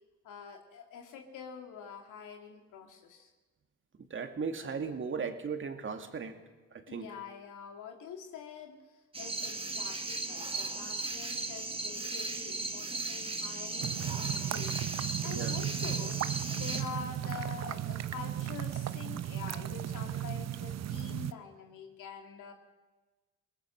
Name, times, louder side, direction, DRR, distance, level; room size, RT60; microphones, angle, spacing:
voice 1, 0.2-3.3 6.9-16.2 16.5-22.5, left 7 dB, 85° left, 2 dB, 2.6 m, -46 dB
voice 2, 4.0-6.4 6.7-7.1 15.3-15.6, right 5 dB, 40° right, 6 dB, 2.4 m, -37 dB
sound 1, 9.1-16.8, right 2 dB, 20° right, 1.7 m, -37 dB
sound 2, 13.8-21.3, right 11 dB, 60° right, 0.8 m, -35 dB
22.5 x 19.0 x 6.5 m, 1.2 s
cardioid pair, 90°, 30 cm